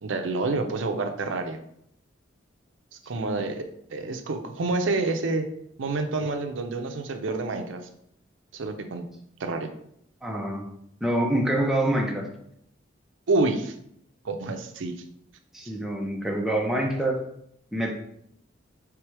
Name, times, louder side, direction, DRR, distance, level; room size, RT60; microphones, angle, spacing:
voice 1, 0.0-1.6 3.1-3.6 3.9-5.5 5.8-7.8 8.5-9.0 9.4-9.7 13.3-13.7 14.2-14.9, right 3 dB, 85° right, 6 dB, 0.5 m, -28 dB
voice 2, 10.2-10.7 11.0-12.3 15.5-17.2 17.7-17.9, right 1 dB, ahead, 0 dB, 0.5 m, -26 dB
3.4 x 3.3 x 4.6 m, 0.72 s
head